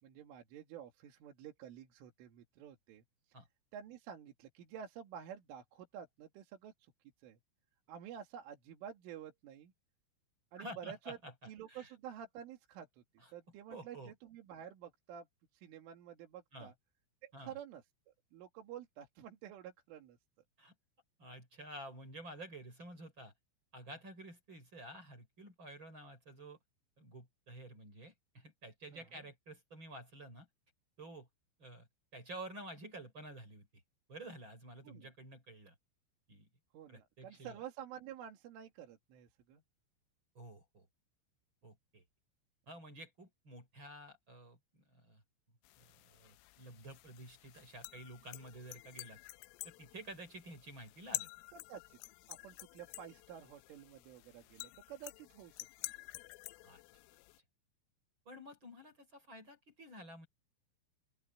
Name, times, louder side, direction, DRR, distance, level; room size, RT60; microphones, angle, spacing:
voice 1, 0.0-3.0 3.7-6.9 7.2-7.4 7.9-9.7 10.5-11.2 11.5-13.0 13.3-15.3 15.5-16.7 17.2-17.8 18.3-20.2 28.9-29.2 34.8-35.1 36.7-39.6 51.5-52.0 52.3-55.6, right 9 dB, 70° right, 4.8 m, -50 dB
voice 2, 10.5-11.9 13.2-13.3 13.7-14.1 16.5-16.7 17.3-17.5 20.6-20.7 21.2-23.3 23.7-26.6 27.0-30.5 31.0-31.3 31.6-33.7 34.1-35.7 36.3-36.5 36.9-37.6 40.4-40.9 41.6-42.0 42.7-45.2 45.8-49.2 49.6-51.3 56.6-56.8 58.3-60.3, right 1 dB, 25° right, 5.5 m, -51 dB
sound 1, 45.6-57.4, left 19 dB, 80° left, 3.2 m, -49 dB
open air
omnidirectional pair, 5.9 m